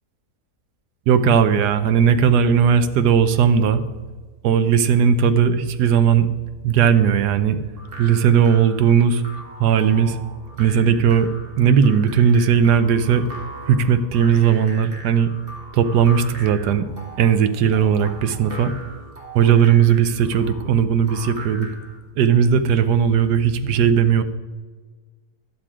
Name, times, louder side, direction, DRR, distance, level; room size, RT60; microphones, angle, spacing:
voice 1, 1.1-3.8 4.4-6.3 6.6-7.6 8.0-9.2 9.6-10.2 10.6-11.3 11.6-13.2 13.7-15.3 15.7-16.9 17.2-18.7 19.3-21.7 22.2-24.2, right 7 dB, 85° right, 10 dB, 1.3 m, -17 dB
sound 1, 7.8-22.0, right 1 dB, 35° right, 1.6 m, -40 dB
11.0 x 7.5 x 4.9 m, 1.4 s
omnidirectional pair, 1.7 m